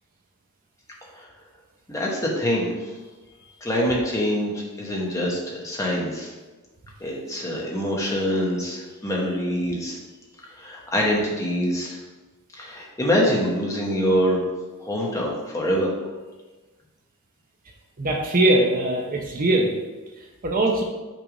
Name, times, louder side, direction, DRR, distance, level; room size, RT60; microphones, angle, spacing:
voice 1, 1.9-2.9 3.6-6.3 7.0-10.0 10.6-12.0 12.5-14.4 14.8-15.9, equal, 15° left, -3 dB, 1.0 m, -25 dB
voice 2, 18.0-19.7 20.4-20.8, right 1 dB, 40° right, 1 dB, 0.6 m, -21 dB
6.1 x 3.5 x 4.9 m, 1.2 s
head